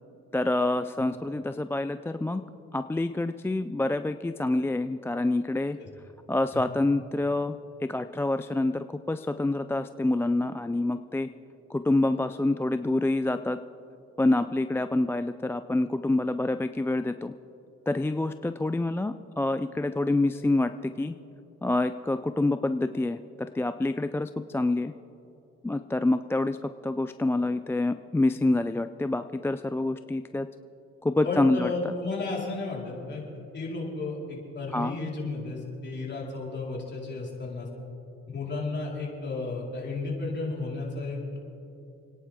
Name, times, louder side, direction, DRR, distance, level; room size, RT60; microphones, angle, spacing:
voice 1, 0.3-2.4 2.7-5.8 6.3-11.3 11.7-13.6 14.2-17.3 17.9-21.1 21.6-24.9 25.6-30.5 31.0-31.9 34.7-35.0, left 2 dB, 10° left, 10 dB, 0.3 m, -27 dB
voice 2, 31.2-33.2 33.5-37.7 38.3-41.4, left 3 dB, 35° left, -4 dB, 4.5 m, -33 dB
29.5 x 10.0 x 3.7 m, 2.8 s
cardioid pair, 90°, 30 cm